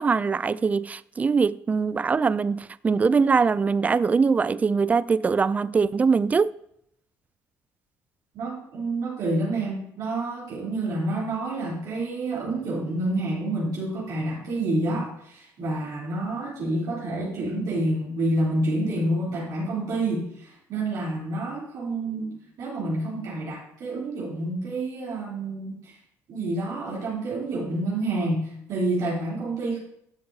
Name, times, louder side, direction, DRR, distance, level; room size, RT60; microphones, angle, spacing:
voice 1, 0.0-6.5, right 5 dB, 25° right, 0.3 m, -22 dB
voice 2, 8.3-26.0 26.3-29.8, right 2 dB, 65° right, 3.5 m, -28 dB
12.0 x 7.7 x 2.8 m
cardioid pair, 100°, 6 cm